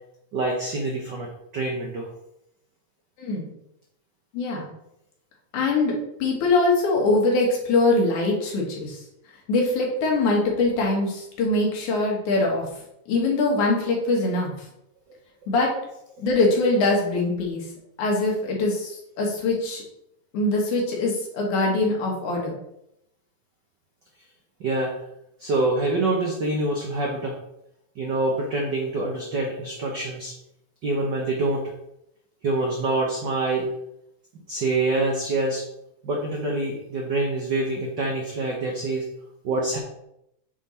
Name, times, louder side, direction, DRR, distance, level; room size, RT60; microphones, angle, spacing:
voice 1, 0.3-2.1 24.6-24.9 25.4-27.3 28.0-30.3 30.8-31.7 32.4-33.7 34.5-35.6 36.0-39.0 39.4-39.8, right 2 dB, 80° right, 0 dB, 0.9 m, -26 dB
voice 2, 3.2-3.5 4.3-4.6 5.5-5.9 6.2-9.0 9.5-12.7 13.1-14.5 15.5-15.7 16.2-17.7 18.0-19.8 20.3-22.5, left 2 dB, 85° left, -1 dB, 3.0 m, -23 dB
8.2 x 3.8 x 4.2 m, 0.80 s
omnidirectional pair, 3.4 m